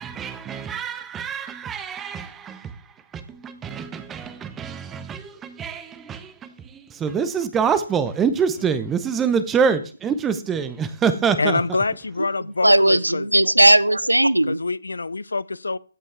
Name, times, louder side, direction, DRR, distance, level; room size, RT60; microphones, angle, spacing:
voice 1, 0.0-2.8 3.1-11.6, right 6 dB, 10° right, 0.7 m, -25 dB
voice 2, 11.4-13.3 14.5-15.8, left 3 dB, 70° left, 0.4 m, -25 dB
voice 3, 12.6-14.6, right 1 dB, 85° right, 0.4 m, -17 dB
14.5 x 5.4 x 3.4 m
figure-of-eight pair, 135°, 0 cm